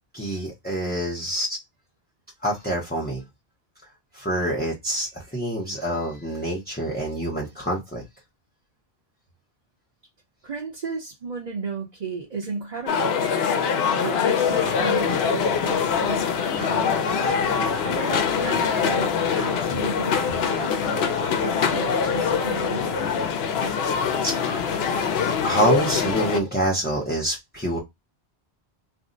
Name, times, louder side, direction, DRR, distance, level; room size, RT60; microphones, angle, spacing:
voice 1, 0.1-1.6 2.4-3.2 4.1-8.0 24.2-24.8 25.4-27.8, right 1 dB, 10° left, 0.5 m, -26 dB
voice 2, 10.4-13.2 13.9-17.3 17.8-23.1, right 4 dB, 45° right, 0.8 m, -34 dB
sound 1, 12.9-26.4, left 6 dB, 75° left, 0.8 m, -23 dB
2.6 x 2.1 x 3.7 m
omnidirectional pair, 1.1 m